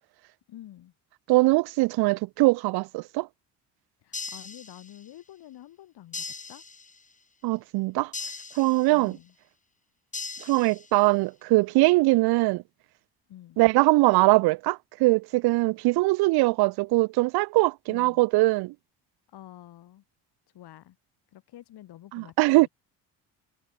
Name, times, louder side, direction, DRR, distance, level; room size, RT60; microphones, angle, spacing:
voice 1, 0.5-0.9 4.0-6.6 8.9-9.3 13.3-13.6 17.9-18.2 19.3-20.0 20.5-21.0 21.3-22.7, left 13 dB, 70° left, 7.7 m, -48 dB
voice 2, 1.3-3.3 7.4-8.1 8.6-9.2 10.4-12.6 13.6-18.7 22.1-22.7, right 22 dB, 65° right, 0.5 m, -22 dB
sound 1, 4.1-5.2 6.1-7.2 8.1-9.2 10.1-11.2, left 4 dB, 20° left, 1.5 m, -39 dB
supercardioid pair, 75°, 41 cm